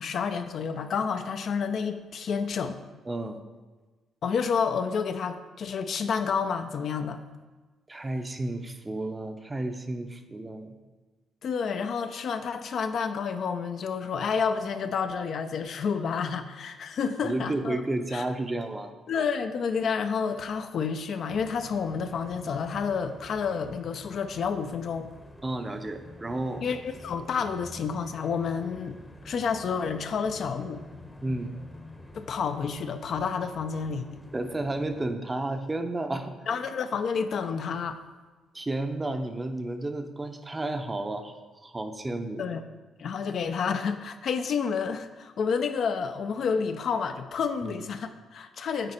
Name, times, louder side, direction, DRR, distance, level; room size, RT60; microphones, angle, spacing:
voice 1, 0.0-2.8 4.2-7.2 11.4-17.8 18.1-18.2 19.1-25.1 26.6-29.0 29.2-30.8 32.1-34.2 36.5-38.0 42.4-42.6 43.0-48.9, left 6 dB, 60° left, 8 dB, 0.5 m, -29 dB
voice 2, 3.1-3.4 7.9-10.7 17.2-18.9 25.4-26.6 31.2-31.6 34.3-36.4 38.5-42.5 47.6-47.8, right 2 dB, 20° right, 7 dB, 0.6 m, -32 dB
sound 1, 21.3-35.1, left 1 dB, 10° left, 0.8 m, -48 dB
8.9 x 4.3 x 4.2 m, 1.3 s
cardioid pair, 90°, 0 cm